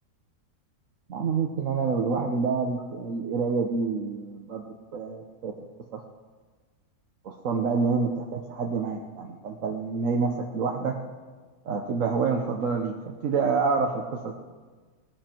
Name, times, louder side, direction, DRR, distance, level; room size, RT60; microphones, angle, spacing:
voice 1, 1.1-5.5 5.9-6.0 7.2-11.0 11.6-14.3, right 5 dB, 55° right, 2 dB, 1.1 m, -27 dB
19.0 x 12.5 x 4.5 m, 1.4 s
omnidirectional pair, 1.9 m